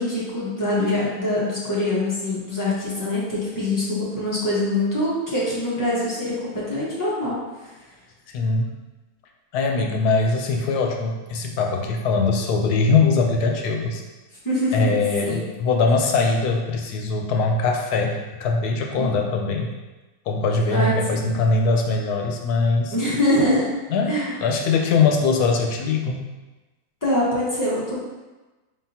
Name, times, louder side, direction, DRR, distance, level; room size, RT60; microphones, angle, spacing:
voice 1, 0.0-7.4 14.4-14.9 15.2-15.4 19.0-19.3 20.7-21.4 22.9-23.7 24.1-24.3 27.0-28.0, left 1 dB, 15° left, -8 dB, 1.2 m, -24 dB
voice 2, 8.3-8.7 9.5-14.0 14.7-19.7 20.3-22.9 23.9-26.2, left 4 dB, 80° left, 2 dB, 1.2 m, -21 dB
4.8 x 3.7 x 2.8 m, 1.1 s
omnidirectional pair, 1.6 m